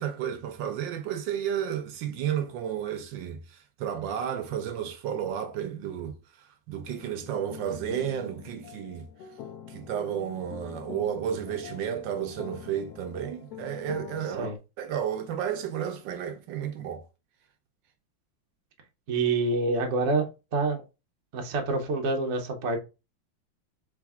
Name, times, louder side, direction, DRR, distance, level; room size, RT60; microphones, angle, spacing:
voice 1, 0.0-9.1 9.7-17.0, right 9 dB, 75° right, 1.2 m, -32 dB
sound 1, 6.9-14.6, left 8 dB, 75° left, 0.8 m, -45 dB
voice 2, 19.1-20.8 21.3-22.8, right 3 dB, 55° right, 0.8 m, -27 dB
3.6 x 3.5 x 3.5 m
omnidirectional pair, 2.1 m